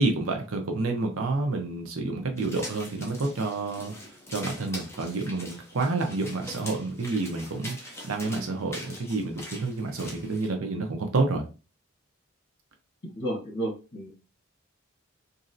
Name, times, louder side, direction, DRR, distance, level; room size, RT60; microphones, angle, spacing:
voice 1, 0.0-3.9 4.3-11.5, right 3 dB, 90° right, 3 dB, 0.7 m, -29 dB
sound 1, 2.4-10.5, left 1 dB, 10° left, 0.6 m, -43 dB
voice 2, 13.1-14.1, right 1 dB, 55° left, 0 dB, 1.1 m, -32 dB
3.0 x 2.6 x 2.6 m, 0.31 s
head